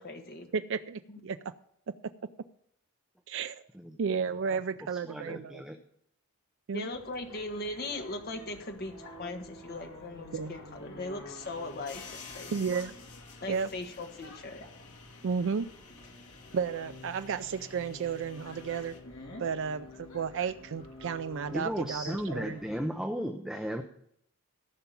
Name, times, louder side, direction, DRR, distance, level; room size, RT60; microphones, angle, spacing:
voice 1, 0.0-0.5 1.1-1.2 6.7-12.5 13.4-14.7, left 2 dB, 45° left, 4 dB, 1.5 m, -39 dB
voice 2, 0.5-1.5 3.3-3.6 4.0-5.6 6.7-6.9 10.3-10.5 12.5-12.9 13.5-13.7 15.2-15.7 16.5-19.0 19.4-22.6, right 6 dB, 55° right, 10 dB, 0.4 m, -33 dB
voice 3, 4.9-5.8 21.5-23.8, equal, ahead, 4 dB, 0.6 m, -35 dB
sound 1, 6.9-22.8, left 1 dB, 60° left, 3.0 m, -49 dB
sound 2, 11.4-19.0, left 5 dB, 80° left, 2.0 m, -52 dB
14.5 x 5.9 x 7.0 m, 0.72 s
head